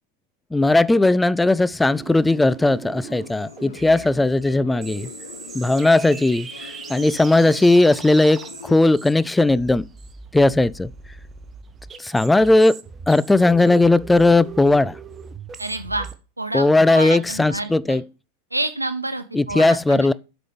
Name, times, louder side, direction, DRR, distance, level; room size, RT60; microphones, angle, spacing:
voice 1, 0.5-5.1 5.5-6.5 6.9-9.9 10.3-10.9 12.0-12.8 13.1-15.0 16.5-18.0 19.3-20.1, left 2 dB, 5° left, 0.3 m, -17 dB
sound 1, 1.8-16.1, right 6 dB, 20° right, 0.9 m, -39 dB
sound 2, 1.9-8.8, left 7 dB, 65° left, 0.8 m, -42 dB
voice 2, 15.6-16.1 16.4-18.0 18.5-20.1, right 2 dB, 85° right, 0.6 m, -28 dB
8.2 x 5.9 x 3.6 m
figure-of-eight pair, 90°, 0 cm